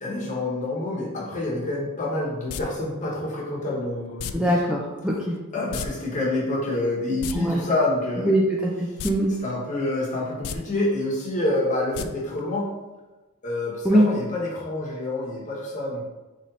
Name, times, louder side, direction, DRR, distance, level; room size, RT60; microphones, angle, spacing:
voice 1, 0.0-4.6 5.5-8.4 8.9-9.0 9.4-12.7 13.4-16.0, left 2 dB, 35° left, -4 dB, 1.2 m, -27 dB
sound 1, 2.5-2.6 4.2-4.3 5.7-5.9 6.1-6.2 7.1-7.3 9.0-9.1 9.5-9.6 10.3-10.6 11.9-12.1 12.4-12.5, left 8 dB, 85° left, 0.3 m, -32 dB
voice 2, 4.3-5.4 7.3-7.6 8.3-8.4 8.8-9.3 13.9-14.0, right 1 dB, 5° right, -4 dB, 0.4 m, -21 dB
4.0 x 3.2 x 4.1 m, 1.2 s
head